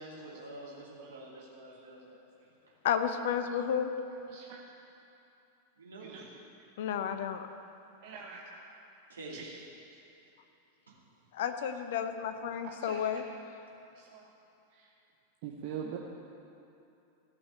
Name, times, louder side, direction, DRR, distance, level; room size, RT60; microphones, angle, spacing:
voice 1, 0.0-2.2 2.7-2.8 5.8-6.3 9.1-9.4 10.9-11.0 13.7-13.8, right 2 dB, 70° right, -4 dB, 2.5 m, -47 dB
voice 2, 1.0-1.5 4.3-4.6 6.0-6.3 8.0-8.6 9.3-9.6 12.6-13.3 14.0-14.3 14.7-14.9 15.4-16.0, right 7 dB, 50° right, 0 dB, 0.9 m, -44 dB
voice 3, 2.8-3.9 6.8-7.4 11.3-13.2, left 8 dB, 55° left, 8 dB, 0.7 m, -32 dB
15.0 x 5.9 x 7.8 m, 2.7 s
figure-of-eight pair, 90°, 0 cm